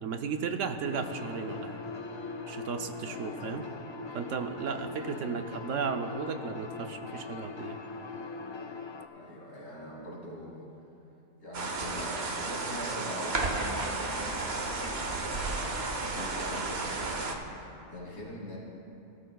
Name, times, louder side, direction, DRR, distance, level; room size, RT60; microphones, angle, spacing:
voice 1, 0.0-1.8 2.5-3.6 4.1-7.8, right 5 dB, 80° right, 6 dB, 1.1 m, -34 dB
sound 1, 0.8-9.1, left 4 dB, 40° left, 0.4 m, -41 dB
voice 2, 3.0-3.4 4.6-4.9 9.1-10.7 11.4-17.3 17.9-18.6, left 1 dB, 75° left, -4 dB, 2.8 m, -43 dB
sound 2, 11.5-17.3, right 3 dB, 55° right, 1.2 m, -33 dB
18.0 x 13.0 x 2.3 m, 2.8 s
omnidirectional pair, 1.3 m